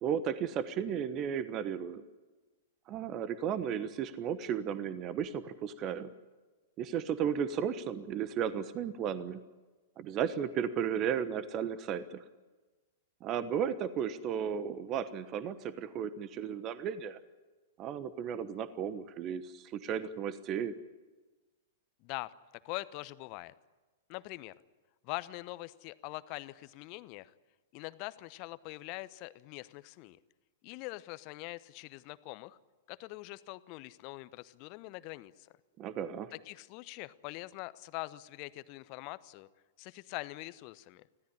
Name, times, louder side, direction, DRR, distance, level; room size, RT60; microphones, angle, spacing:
voice 1, 0.0-2.0 2.9-6.1 6.8-9.4 10.0-12.2 13.2-17.2 17.8-20.8 35.8-36.3, right 8 dB, 35° right, 13 dB, 1.2 m, -34 dB
voice 2, 22.0-22.3 22.6-23.5 24.1-24.5 25.0-27.3 27.7-30.2 30.6-32.6 32.9-35.5 36.5-39.5 39.8-41.0, left 20 dB, 40° left, 15 dB, 1.0 m, -43 dB
25.5 x 16.5 x 9.9 m, 1.3 s
figure-of-eight pair, 105°, 0 cm